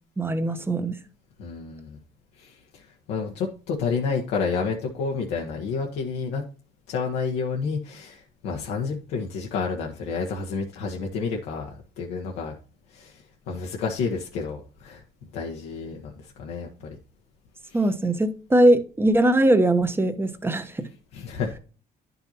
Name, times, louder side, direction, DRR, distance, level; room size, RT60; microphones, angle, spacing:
voice 1, 0.2-1.0 17.7-20.8, right 1 dB, 15° right, 1.0 m, -21 dB
voice 2, 1.4-2.0 2.4-6.4 6.9-12.6 12.9-15.0 15.3-17.0 17.7-17.8 21.1-21.6, left 5 dB, 85° left, 1.3 m, -30 dB
10.5 x 5.5 x 2.8 m
cardioid pair, 110°, 17 cm